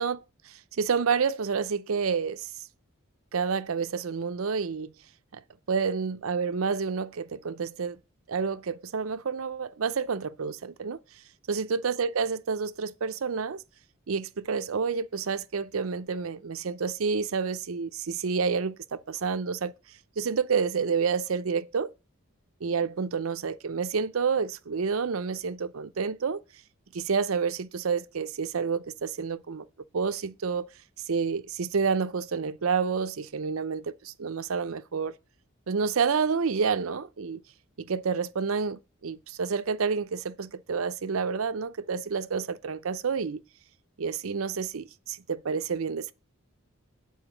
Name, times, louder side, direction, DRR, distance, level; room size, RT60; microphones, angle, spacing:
voice 1, 0.0-2.5 3.3-4.9 5.3-5.4 5.7-8.0 8.3-11.0 11.5-13.6 14.1-19.7 20.2-21.9 22.6-26.4 26.9-29.7 29.9-30.7 31.1-35.2 35.7-37.4 37.8-43.4 44.0-46.1, right 5 dB, 85° right, 0.6 m, -29 dB
8.9 x 4.6 x 6.1 m
head